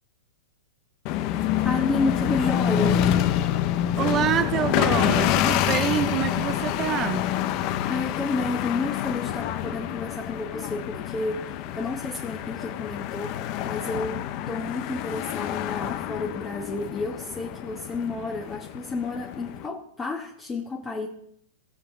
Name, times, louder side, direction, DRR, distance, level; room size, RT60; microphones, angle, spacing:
sound 1, 1.1-19.7, left 11 dB, 35° left, 0.8 m, -27 dB
voice 1, 1.6-3.0 7.9-21.1, left 3 dB, 15° left, 0 dB, 1.3 m, -31 dB
voice 2, 4.0-7.3, right 9 dB, 25° right, 10 dB, 0.6 m, -26 dB
20.0 x 7.0 x 3.7 m, 0.69 s
hypercardioid pair, 155°, 0 cm